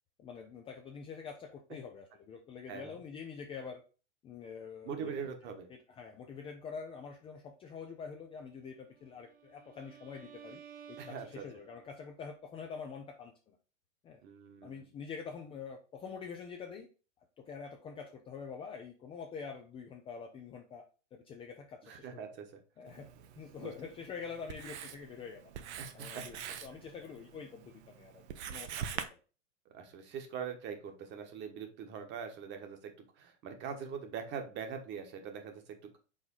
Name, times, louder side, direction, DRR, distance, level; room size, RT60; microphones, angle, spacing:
voice 1, 0.2-3.8 4.2-10.6 10.9-13.6 14.0-14.2 14.6-16.9 17.4-20.8 21.1-22.3 22.8-23.1 23.4-25.5 25.9-26.4 26.6-28.2 28.5-29.2, left 6 dB, 15° left, 3 dB, 0.5 m, -46 dB
voice 2, 4.8-5.7 11.0-11.4 14.2-14.8 21.8-22.6 23.6-23.7 25.8-26.3 28.8-28.9 29.7-36.0, right 6 dB, 30° right, 6 dB, 1.3 m, -42 dB
Bowed string instrument, 8.9-12.0, right 8 dB, 50° right, 1.3 m, -54 dB
Writing, 22.9-29.0, right 9 dB, 65° right, 0.9 m, -45 dB
5.0 x 3.9 x 5.4 m, 0.35 s
hypercardioid pair, 135°, 36 cm